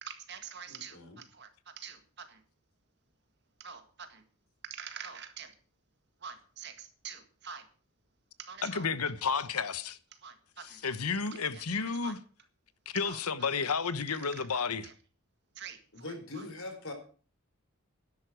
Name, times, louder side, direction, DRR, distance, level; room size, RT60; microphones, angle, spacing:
voice 1, 0.0-2.4 3.6-4.2 4.6-5.5 6.2-7.6 8.4-8.9 10.2-10.8 11.5-12.2 13.0-13.2 14.1-14.9 15.6-16.5, right 7 dB, 50° right, 1.8 m, -46 dB
voice 2, 0.7-1.2 15.9-16.9, left 2 dB, 65° left, 4.4 m, -42 dB
voice 3, 8.6-10.0 10.6-12.2 12.9-14.9, left 5 dB, 85° left, 1.1 m, -32 dB
12.0 x 11.0 x 6.3 m
head